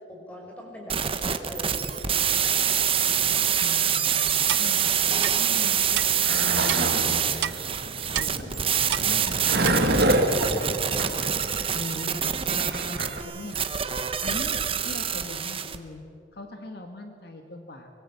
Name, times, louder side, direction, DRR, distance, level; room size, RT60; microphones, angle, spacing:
voice 1, 0.1-2.3 10.6-10.7, equal, 5° left, -1 dB, 5.4 m, -41 dB
sound 1, 0.9-15.8, right 8 dB, 30° right, 1.1 m, -26 dB
voice 2, 3.5-7.7 8.1-8.6 8.9-10.0 10.3-11.4 11.7-13.7 14.2-16.0 16.3-17.9, left 2 dB, 60° left, 5 dB, 1.7 m, -41 dB
Clock, 4.5-4.7 5.2-5.3 6.0-6.1 6.7-6.8 7.4-7.6 8.1-8.3 8.9-9.1 9.6-9.8, right 11 dB, 75° right, 0.6 m, -28 dB
Skateboard, 5.7-13.2, right 1 dB, 60° right, 2.1 m, -27 dB
24.5 x 21.0 x 7.2 m, 2.8 s
head